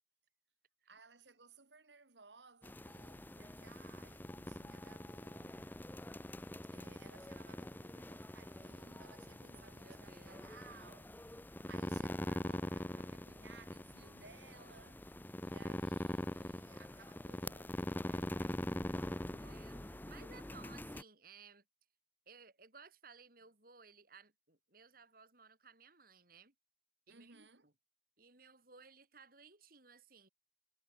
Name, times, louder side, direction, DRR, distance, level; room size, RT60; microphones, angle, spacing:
voice 1, 0.9-5.7 6.7-15.1 15.4-18.7 19.1-19.9 27.1-27.7, right 4 dB, 85° right, 2.5 m, -61 dB
sound 1, 2.6-21.0, left 1 dB, 10° left, 0.7 m, -43 dB
voice 2, 9.5-10.5 15.6-15.7 19.4-21.6 22.3-26.5 27.1-27.7 28.2-30.3, right 5 dB, 55° right, 6.4 m, -60 dB
head